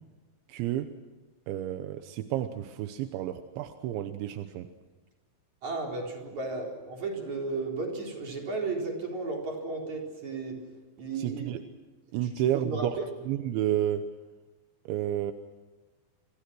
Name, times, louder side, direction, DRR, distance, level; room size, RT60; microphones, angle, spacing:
voice 1, 0.5-0.9 1.5-4.7 11.2-11.6 12.1-13.0 13.3-14.1 14.9-15.3, right 11 dB, 85° right, 9 dB, 3.3 m, -31 dB
voice 2, 5.6-10.6 11.0-11.4 12.2-13.1, right 3 dB, 40° right, 0 dB, 5.2 m, -34 dB
30.0 x 26.0 x 6.3 m, 1.2 s
omnidirectional pair, 5.2 m